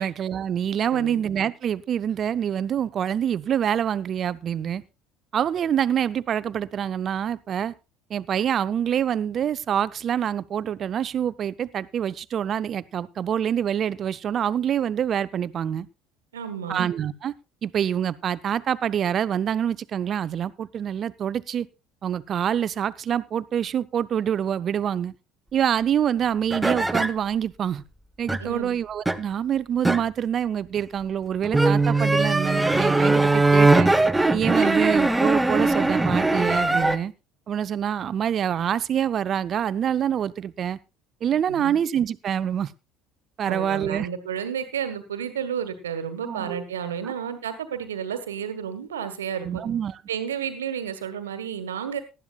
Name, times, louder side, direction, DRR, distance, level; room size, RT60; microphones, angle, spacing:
voice 1, 0.0-4.8 5.3-7.7 8.1-15.9 16.7-17.3 17.6-21.7 22.0-25.1 25.5-27.8 28.2-33.9 34.3-37.1 37.5-40.8 41.2-42.7 43.4-44.1 46.2-46.6 47.0-47.1 49.4-50.0, right 9 dB, 40° right, 17 dB, 0.6 m, -26 dB
voice 2, 16.3-16.9 28.4-28.7 34.5-34.7 41.5-41.7 43.5-49.6 50.1-52.0, right 8 dB, 80° right, 10 dB, 1.5 m, -32 dB
sound 1, 26.5-27.1 28.3-28.5 29.1-29.2 29.8-30.0 31.4-37.0, right 2 dB, 10° right, 1.0 m, -20 dB
18.5 x 12.5 x 2.4 m, 0.29 s
figure-of-eight pair, 60°, 0 cm